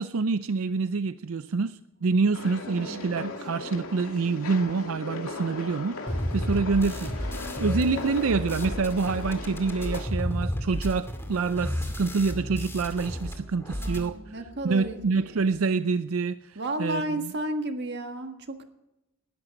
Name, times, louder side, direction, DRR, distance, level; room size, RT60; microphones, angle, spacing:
voice 1, 0.0-14.4 14.6-17.3, right 4 dB, 70° right, 0.5 m, -27 dB
sound 1, 2.3-10.0, left 3 dB, 85° left, 2.5 m, -38 dB
voice 2, 2.7-3.3 13.7-15.1 15.3-15.4 16.5-18.6, right 1 dB, 55° right, 1.6 m, -33 dB
sound 2, 6.1-13.3 13.6-14.1, equal, 10° left, 2.3 m, -32 dB
sound 3, 10.0-15.6, right 1 dB, 55° left, 3.1 m, -51 dB
19.5 x 13.0 x 5.3 m
head